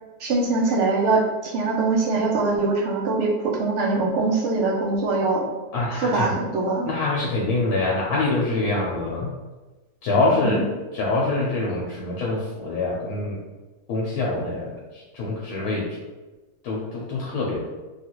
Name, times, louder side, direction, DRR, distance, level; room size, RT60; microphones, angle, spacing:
voice 1, 0.2-5.4 5.9-6.9 10.3-10.6, right 3 dB, 60° right, -2 dB, 0.8 m, -23 dB
voice 2, 5.7-6.4 6.9-9.3 10.0-10.6 10.9-13.4 13.9-14.7 15.1-15.8 16.6-17.6, left 2 dB, 80° left, -4 dB, 1.1 m, -24 dB
3.3 x 2.4 x 2.9 m, 1.2 s
omnidirectional pair, 1.6 m